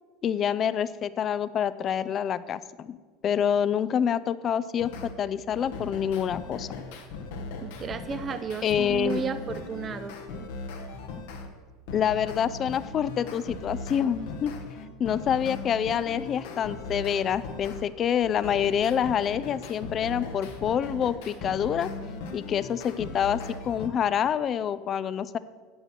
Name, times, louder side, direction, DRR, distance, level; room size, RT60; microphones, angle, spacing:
voice 1, 0.2-3.0 3.2-6.7 8.6-9.2 11.9-14.5 15.0-21.9 22.3-25.4, left 8 dB, 40° left, 16 dB, 0.4 m, -27 dB
sound 1, 4.8-5.1 5.5-11.5 11.9-17.8 18.2-23.9, left 3 dB, 70° left, 1.1 m, -38 dB
voice 2, 7.6-10.2, right 6 dB, 35° right, 11 dB, 0.5 m, -33 dB
8.0 x 7.8 x 6.0 m, 1.5 s
hypercardioid pair, 80°, 0 cm